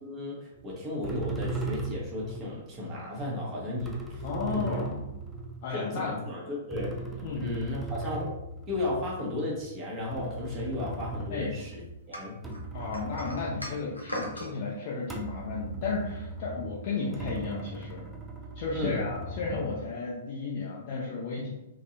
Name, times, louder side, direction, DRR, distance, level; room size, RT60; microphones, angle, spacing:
voice 1, 0.0-4.2 4.5-4.8 5.7-7.0 7.3-8.3 8.7-12.4 18.7-19.0, left 1 dB, 25° right, -4 dB, 1.3 m, -34 dB
sound 1, 0.6-0.7 1.0-2.7 3.5-6.1 6.7-11.9 12.3-14.5 15.0-20.1, right 2 dB, 5° right, 0.5 m, -38 dB
voice 2, 4.2-5.2 5.6-6.1 7.2-7.5 11.3-11.5 12.7-18.1 18.5-21.5, left 4 dB, 45° left, -4 dB, 0.6 m, -33 dB
sound 2, 12.1-14.5, equal, 85° left, 0.7 m, -38 dB
3.7 x 2.8 x 2.6 m, 0.92 s
figure-of-eight pair, 110°, 0 cm